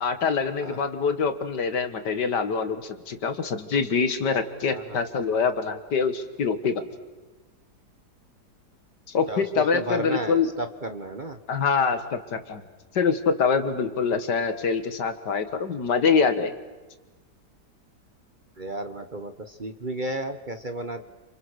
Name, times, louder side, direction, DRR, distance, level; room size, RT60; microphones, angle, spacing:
voice 1, 0.0-6.8 9.1-10.5 11.5-12.6 12.9-16.5, left 5 dB, 80° left, 9 dB, 2.3 m, -25 dB
voice 2, 9.3-11.4 18.6-21.1, right 1 dB, 35° right, 9 dB, 1.1 m, -33 dB
29.0 x 27.5 x 6.4 m, 1.2 s
omnidirectional pair, 1.8 m